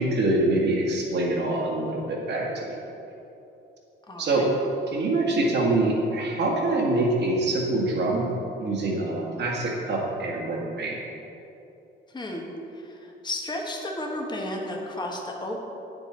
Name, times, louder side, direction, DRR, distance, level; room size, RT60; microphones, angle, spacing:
voice 1, 0.0-2.8 4.2-4.5 4.9-8.3 8.6-11.0, right 2 dB, 60° right, -2 dB, 2.0 m, -25 dB
voice 2, 4.1-4.5 12.1-15.6, left 1 dB, 20° left, 0 dB, 1.4 m, -33 dB
8.9 x 8.0 x 4.5 m, 2.9 s
cardioid pair, 90°, 20 cm